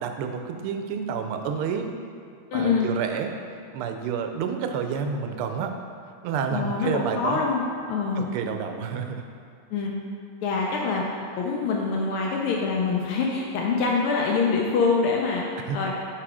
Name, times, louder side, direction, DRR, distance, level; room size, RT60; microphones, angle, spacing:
voice 1, 0.0-1.9 2.5-3.3 3.7-5.7 6.2-7.4 8.2-9.2 15.7-15.9, right 6 dB, 90° right, 5 dB, 1.5 m, -29 dB
voice 2, 2.5-2.9 6.5-7.6 7.9-8.4 9.7-9.9 10.4-11.0 11.3-15.9, left 4 dB, 80° left, -1 dB, 1.5 m, -25 dB
6.0 x 4.7 x 4.9 m, 2.4 s
omnidirectional pair, 2.4 m